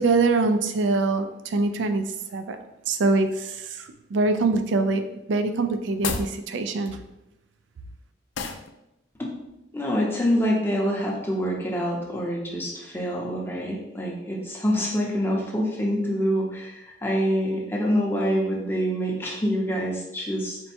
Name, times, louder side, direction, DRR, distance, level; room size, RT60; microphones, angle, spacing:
voice 1, 0.0-2.6 2.9-5.0 5.3-7.0, right 3 dB, 75° right, 8 dB, 0.4 m, -24 dB
sound 1, 5.9-6.4 8.3-8.7, left 5 dB, 85° left, 0.4 m, -30 dB
voice 2, 9.7-20.6, equal, 10° left, -3 dB, 0.7 m, -26 dB
4.5 x 2.2 x 4.2 m, 0.90 s
head